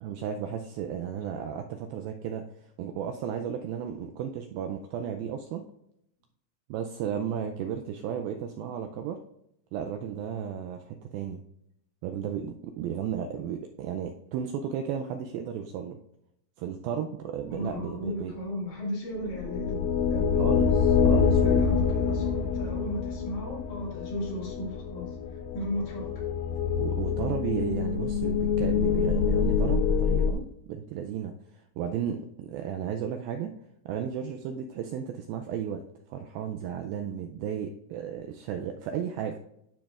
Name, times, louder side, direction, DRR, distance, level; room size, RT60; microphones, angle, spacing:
voice 1, 0.0-2.5 2.8-5.7 6.7-9.2 9.7-11.4 12.0-16.0 16.6-18.3 20.4-21.7 26.8-31.3 31.8-33.5 33.9-35.8 36.1-39.4, right 8 dB, 85° right, 5 dB, 2.1 m, -34 dB
voice 2, 17.5-20.7 21.4-25.2 25.5-26.2, equal, 55° left, -4 dB, 3.2 m, -35 dB
sound 1, 19.2-30.3, left 6 dB, 90° left, 2.7 m, -26 dB
12.0 x 5.1 x 2.4 m, 0.78 s
omnidirectional pair, 4.6 m